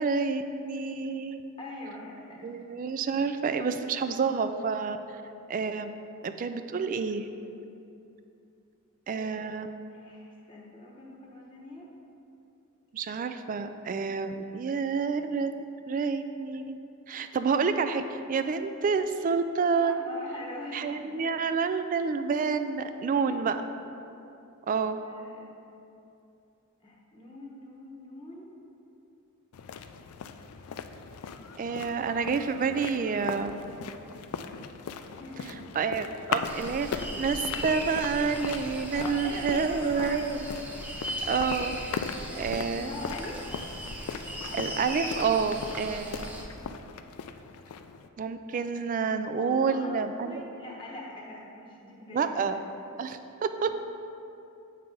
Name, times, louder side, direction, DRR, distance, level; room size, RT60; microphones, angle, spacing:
voice 1, 0.0-1.5 2.4-5.0 5.5-7.3 9.1-9.7 12.9-15.5 15.9-16.8 17.1-18.0 18.3-20.0 20.7-23.6 24.7-25.0 31.6-33.6 35.7-40.4 41.3-41.8 42.3-42.9 44.5-46.3 48.2-50.4 52.1-52.6 53.0-53.7, right 5 dB, 40° right, 9 dB, 0.3 m, -29 dB
voice 2, 1.6-2.5 9.1-9.3 9.9-11.9 19.7-21.3 23.0-23.5 25.0-25.5 26.8-28.5 35.1-35.6 38.9-40.3 42.2-43.6 49.4-52.5, left 1 dB, 25° left, -2 dB, 0.9 m, -42 dB
sound 1, 29.5-48.1, left 6 dB, 80° left, 0.4 m, -39 dB
sound 2, 36.4-46.4, equal, 5° right, 0.6 m, -38 dB
7.9 x 5.4 x 3.7 m, 2.7 s
head